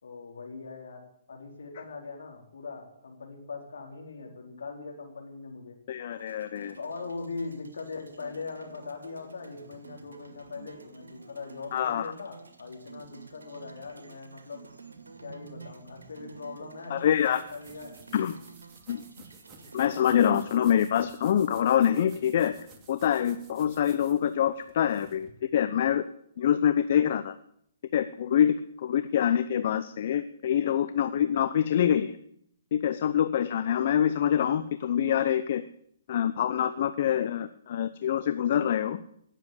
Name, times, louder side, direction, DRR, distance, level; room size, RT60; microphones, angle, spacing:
voice 1, 0.0-5.8 6.8-14.7 15.2-17.9, left 4 dB, 70° left, 1 dB, 4.3 m, -41 dB
voice 2, 5.9-6.8 11.7-12.1 16.9-17.4 18.1-18.4 18.9-19.0 19.7-22.5 22.9-26.1 26.4-27.3 27.9-32.2 32.7-35.6 36.1-39.0, left 9 dB, 50° left, 12 dB, 0.7 m, -25 dB
sound 1, 6.1-20.6, right 4 dB, 80° right, 2.2 m, -50 dB
sound 2, 17.0-25.3, right 4 dB, 25° right, 2.4 m, -53 dB
17.5 x 7.6 x 8.6 m, 0.72 s
figure-of-eight pair, 125°, 0 cm